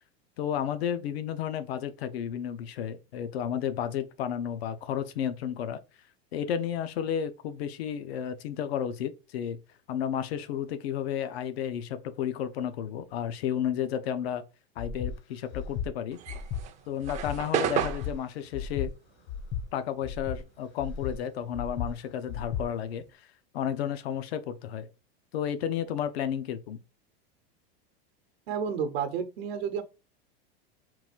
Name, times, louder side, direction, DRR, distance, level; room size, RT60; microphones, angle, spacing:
voice 1, 0.4-5.8 6.3-9.6 9.9-14.4 14.8-16.2 16.9-18.9 19.7-23.3 23.5-24.9 25.3-26.8, left 9 dB, 85° left, 0.6 m, -32 dB
Breathing, 14.8-15.1 15.5-15.9 16.3-16.6 17.0-17.4 17.8-18.1 18.5-18.9 19.3-19.6 20.0-20.4 20.8-21.1 21.5-21.9 22.3-22.6, left 7 dB, 35° left, 0.6 m, -34 dB
sound 1, 16.1-20.8 21.1-23.1, right 10 dB, 25° right, 0.4 m, -34 dB
voice 2, 28.5-29.8, right 7 dB, 85° right, 0.8 m, -31 dB
3.9 x 2.4 x 4.4 m
supercardioid pair, 140°, 30 cm